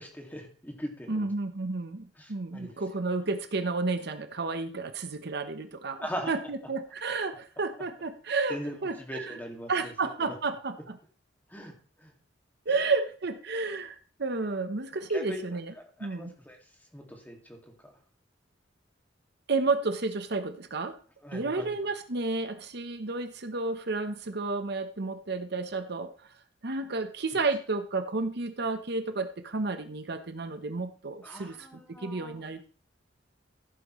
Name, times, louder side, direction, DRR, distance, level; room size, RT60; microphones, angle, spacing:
voice 1, 0.0-1.3 2.2-2.8 6.0-6.3 8.5-9.9 10.2-10.3 11.5-12.1 12.7-12.8 15.1-16.6 16.9-18.0 21.2-21.8 31.2-32.4, equal, 10° left, 2 dB, 2.2 m, -41 dB
voice 2, 1.1-8.6 8.8-9.4 9.7-11.0 12.7-15.7 16.0-16.3 19.5-21.0 21.3-26.3 26.6-31.7 32.0-32.7, right 3 dB, 60° right, 8 dB, 1.0 m, -31 dB
15.0 x 8.3 x 3.2 m, 0.41 s
head